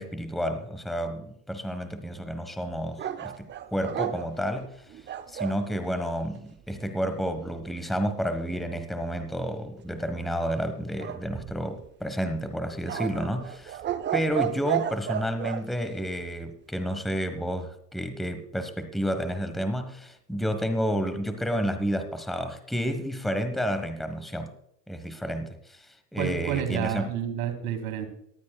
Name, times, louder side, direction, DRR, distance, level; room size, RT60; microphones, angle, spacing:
voice 1, 0.0-5.0 5.3-13.8 14.1-24.5 24.9-27.1, equal, ahead, 8 dB, 1.3 m, -30 dB
sound 1, 3.0-5.6 11.0-11.9 12.9-15.6, right 11 dB, 25° right, 0.6 m, -32 dB
voice 2, 26.1-28.1, right 10 dB, 70° right, 7 dB, 2.4 m, -30 dB
18.5 x 13.0 x 2.3 m, 0.76 s
hypercardioid pair, 90°, 45 cm